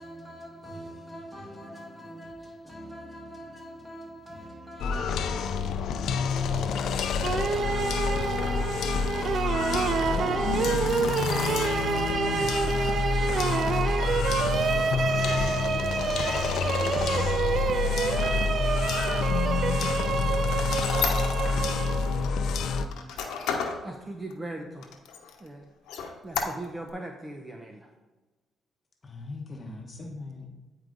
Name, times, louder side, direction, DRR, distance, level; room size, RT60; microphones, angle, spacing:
voice 1, 0.0-5.9 15.7-16.3 21.9-23.1, equal, 5° right, 2.1 m, -45 dB
sound 1, 4.8-22.8, left 5 dB, 75° left, 0.5 m, -28 dB
sound 2, 7.2-22.3, right 6 dB, 55° right, 0.4 m, -28 dB
voice 2, 10.1-11.5 29.0-30.5, left 2 dB, 35° left, 1.1 m, -40 dB
Squeak, 18.8-21.8 22.2-23.8 24.3-24.4 24.8-25.5 25.9-26.9, left 6 dB, 90° left, 0.9 m, -33 dB
voice 3, 23.8-24.9 25.4-25.7 26.2-27.9, right 2 dB, 20° right, 0.7 m, -39 dB
9.1 x 4.8 x 3.9 m
cardioid pair, 90°, 0 cm